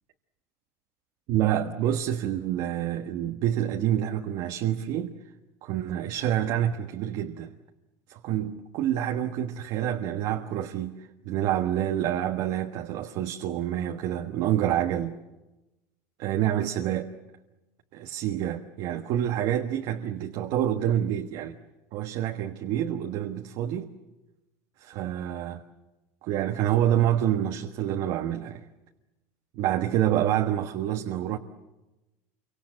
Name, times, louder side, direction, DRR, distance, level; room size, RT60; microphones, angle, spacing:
voice 1, 1.3-5.1 5.6-7.5 8.1-11.0 11.2-15.2 16.2-17.1 17.9-21.6 21.9-23.9 24.8-25.6 26.2-28.6 29.5-31.4, right 11 dB, 60° right, 1.4 m, -27 dB
28.0 x 24.5 x 7.6 m
supercardioid pair, 130°, 8 cm